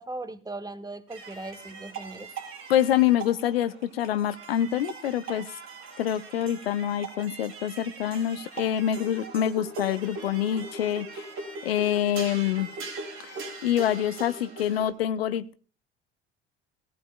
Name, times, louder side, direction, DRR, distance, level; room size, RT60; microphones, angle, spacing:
voice 1, 0.0-2.3, right 2 dB, 15° right, 10 dB, 1.0 m, -38 dB
sound 1, 1.1-14.9, right 3 dB, 55° right, 2.6 m, -41 dB
voice 2, 2.7-5.5 6.0-11.2 11.6-12.7 13.2-13.4 13.6-15.5, left 11 dB, 85° left, 15 dB, 0.5 m, -26 dB
17.5 x 14.0 x 2.2 m, 0.39 s
hypercardioid pair, 60°, 29 cm